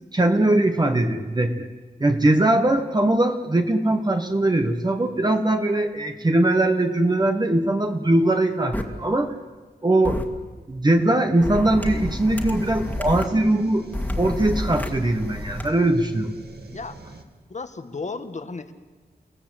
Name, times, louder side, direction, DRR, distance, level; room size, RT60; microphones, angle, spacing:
voice 1, 0.1-1.7 2.0-9.4 9.8-10.2 10.7-13.9 14.2-16.3, right 1 dB, 25° right, 5 dB, 1.4 m, -21 dB
sound 1, 8.7-8.8 10.0-10.2 11.4-13.2 13.9-15.7, left 1 dB, 10° left, 2.2 m, -29 dB
sound 2, 11.8-17.2, right 2 dB, 70° right, 2.3 m, -44 dB
voice 2, 17.5-18.7, left 4 dB, 45° left, 9 dB, 1.6 m, -34 dB
30.0 x 17.5 x 8.1 m, 1.3 s
wide cardioid pair, 125°, 17 cm